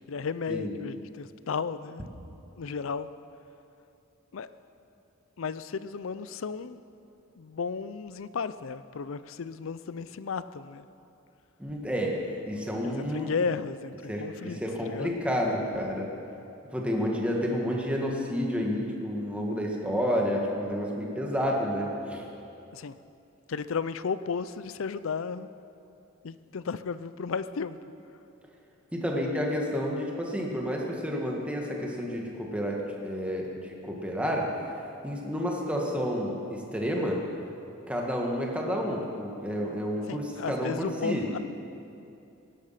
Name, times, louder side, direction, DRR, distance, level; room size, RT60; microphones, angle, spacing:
voice 1, 0.0-2.1 2.6-3.1 4.3-4.5 5.4-6.8 7.4-10.9 12.8-14.6 14.9-15.1 22.7-23.0 23.5-25.5 26.2-27.8 40.1-41.4, left 5 dB, 70° left, 14 dB, 0.5 m, -34 dB
voice 2, 11.6-12.2 12.5-13.3 14.1-16.1 16.7-22.3 28.9-34.5 35.0-37.2 37.9-41.3, equal, 5° right, -1 dB, 1.7 m, -30 dB
17.0 x 11.5 x 5.8 m, 2.8 s
head